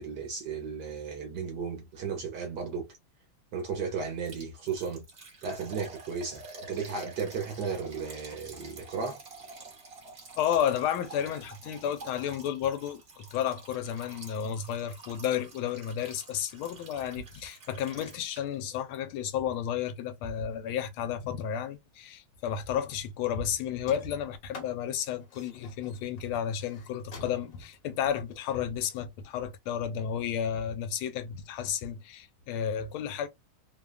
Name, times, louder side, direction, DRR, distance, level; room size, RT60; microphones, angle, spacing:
voice 1, 0.0-2.9 3.5-5.0 5.4-9.2, right 5 dB, 65° right, 1.1 m, -35 dB
Liquid, 4.3-18.7 18.9-19.0 19.5-19.6, right 3 dB, 40° right, 0.8 m, -49 dB
voice 2, 10.4-33.3, left 9 dB, 80° left, 1.4 m, -32 dB
sound 1, 23.8-29.0, left 3 dB, 55° left, 1.1 m, -48 dB
3.3 x 2.2 x 2.2 m
omnidirectional pair, 2.3 m